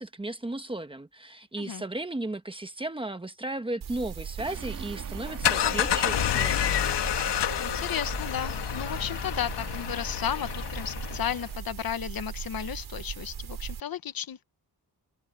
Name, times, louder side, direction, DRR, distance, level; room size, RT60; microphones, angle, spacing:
voice 1, 0.0-6.8, right 2 dB, 15° right, 1.2 m, -35 dB
sound 1, 3.8-13.8, right 8 dB, 65° right, 5.4 m, -39 dB
sound 2, 4.4-8.3, right 7 dB, 50° right, 2.7 m, -44 dB
sound 3, 5.1-11.5, left 10 dB, 90° left, 1.4 m, -29 dB
voice 2, 7.6-14.4, left 9 dB, 60° left, 1.2 m, -34 dB
wide cardioid pair, 170°, 41 cm